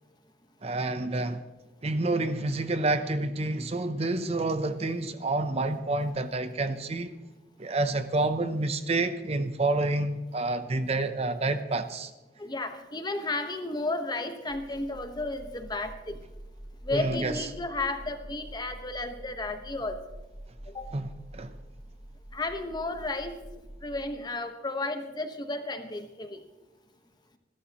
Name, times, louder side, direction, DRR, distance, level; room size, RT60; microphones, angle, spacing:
voice 1, 0.6-1.4 1.8-7.2 7.6-12.1 16.9-17.4 20.9-21.5, right 2 dB, 35° right, 0.7 m, -28 dB
voice 2, 12.4-16.2 16.8-20.0 20.7-20.9 22.3-23.4 23.8-26.4, left 2 dB, 25° left, 1.2 m, -33 dB
sound 1, 14.5-23.8, right 1 dB, 80° right, 1.6 m, -47 dB
27.0 x 12.5 x 3.0 m
head